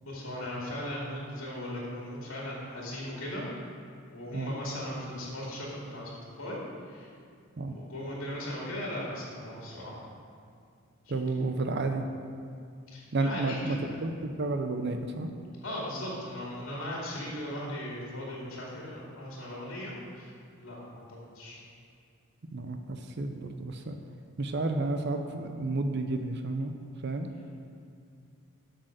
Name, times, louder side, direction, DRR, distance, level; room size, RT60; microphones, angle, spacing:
voice 1, 0.0-3.5 4.1-6.1 6.4-6.6 6.9-7.1 7.7-10.1 12.9-14.0 15.6-20.3 20.6-21.6 27.3-27.5, left 1 dB, 80° left, -4 dB, 2.3 m, -38 dB
voice 2, 11.1-12.0 13.1-15.3 22.5-24.0 24.4-26.7 27.0-27.3, right 2 dB, 50° right, 5 dB, 0.6 m, -31 dB
7.8 x 6.6 x 6.4 m, 2.4 s
head